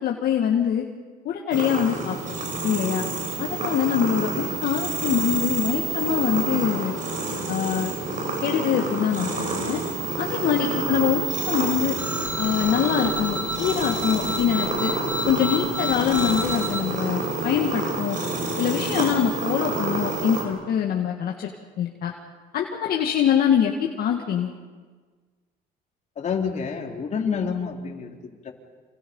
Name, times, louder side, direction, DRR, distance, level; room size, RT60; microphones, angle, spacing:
voice 1, 0.0-0.9 1.3-2.2 2.6-3.0 3.4-7.0 7.5-7.9 8.4-9.3 9.7-9.8 10.2-12.0 12.4-14.9 15.3-18.2 18.6-21.5 21.8-22.1 22.5-24.5, left 9 dB, 60° left, 1 dB, 2.0 m, -24 dB
sound 1, 1.5-20.5, right 3 dB, 50° right, 5.7 m, -28 dB
sound 2, 12.0-16.8, equal, 10° right, 5.0 m, -30 dB
voice 2, 26.2-28.1 28.4-28.5, left 6 dB, 45° left, 1 dB, 4.0 m, -28 dB
28.0 x 27.5 x 5.6 m, 1.5 s
cardioid pair, 110°, 17 cm